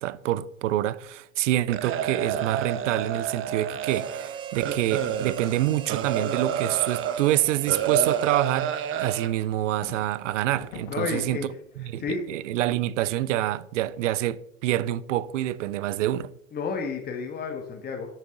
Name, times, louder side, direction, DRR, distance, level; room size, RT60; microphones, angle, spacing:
voice 1, 0.0-16.3, right 13 dB, 60° right, 0.7 m, -27 dB
sound 1, 1.7-7.2 7.7-9.3, right 9 dB, 30° right, 0.8 m, -29 dB
Harmonica, 3.8-9.6, right 9 dB, 15° right, 0.3 m, -40 dB
sound 2, 9.8-13.1, left 5 dB, 50° left, 3.2 m, -48 dB
voice 2, 10.9-11.5 12.0-12.2 16.5-18.1, left 5 dB, 20° left, 1.6 m, -31 dB
13.0 x 7.4 x 3.8 m
figure-of-eight pair, 90°, 42 cm